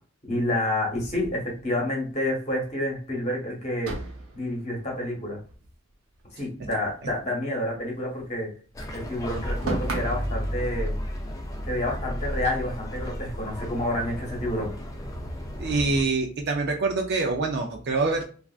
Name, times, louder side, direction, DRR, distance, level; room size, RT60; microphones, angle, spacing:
voice 1, 0.3-3.9 4.3-5.4 6.3-8.5 8.9-10.9 11.7-14.7, left 1 dB, 30° left, -1 dB, 1.1 m, -29 dB
sound 1, 0.9-2.3 2.6-2.7 3.0-3.1 3.8-6.3 6.6-8.4 8.6-10.4, right 2 dB, 80° right, 0.8 m, -38 dB
sound 2, 8.7-16.0, equal, 15° left, 0.4 m, -33 dB
voice 2, 15.6-18.2, right 3 dB, 50° right, 3 dB, 0.4 m, -25 dB
3.3 x 2.4 x 2.3 m, 0.41 s
head